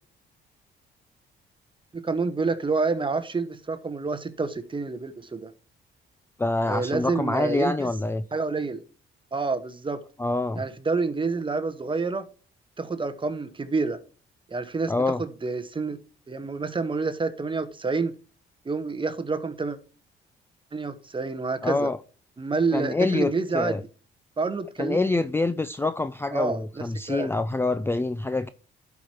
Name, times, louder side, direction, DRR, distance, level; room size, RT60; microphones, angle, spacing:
voice 1, 1.9-5.5 6.7-7.9 8.3-8.8 9.3-10.0 10.6-12.3 12.8-14.0 14.5-16.0 16.3-18.1 18.6-19.8 20.7-21.9 22.4-23.9 24.4-25.0 26.3-27.3, right 4 dB, 25° right, 1.0 m, -28 dB
voice 2, 6.4-8.2 10.2-10.6 14.9-15.2 21.6-22.0 22.7-23.8 24.8-28.5, left 2 dB, 10° left, 0.4 m, -26 dB
11.5 x 4.8 x 4.4 m
cardioid pair, 90°, 20 cm